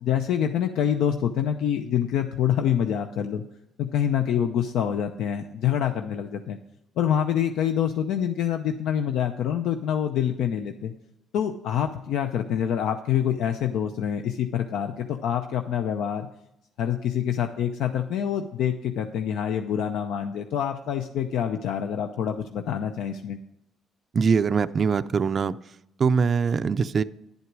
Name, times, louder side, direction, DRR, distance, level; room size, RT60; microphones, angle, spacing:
voice 1, 0.0-3.4 3.8-6.6 7.0-10.9 11.3-16.3 16.8-23.4, left 9 dB, 80° left, 6 dB, 0.6 m, -26 dB
voice 2, 24.1-25.6 26.0-27.0, right 5 dB, 35° right, 12 dB, 0.3 m, -22 dB
10.5 x 8.1 x 4.7 m, 0.85 s
cardioid pair, 130°, 0 cm